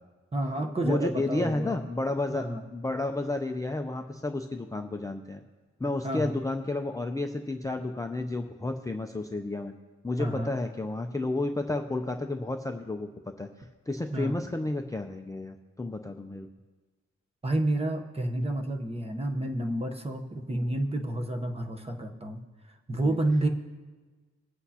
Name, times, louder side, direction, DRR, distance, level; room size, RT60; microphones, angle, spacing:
voice 1, 0.3-1.8 2.3-2.6 6.0-6.4 10.2-10.5 14.1-14.3 17.4-22.4 22.9-23.5, right 1 dB, 20° right, 3 dB, 0.9 m, -30 dB
voice 2, 0.8-2.5 2.7-5.4 5.8-9.7 10.0-13.1 13.4-13.5 13.9-16.5 23.1-23.2, left 2 dB, 10° left, 4 dB, 0.4 m, -31 dB
21.0 x 8.0 x 2.8 m, 1.3 s
wide cardioid pair, 165°, 29 cm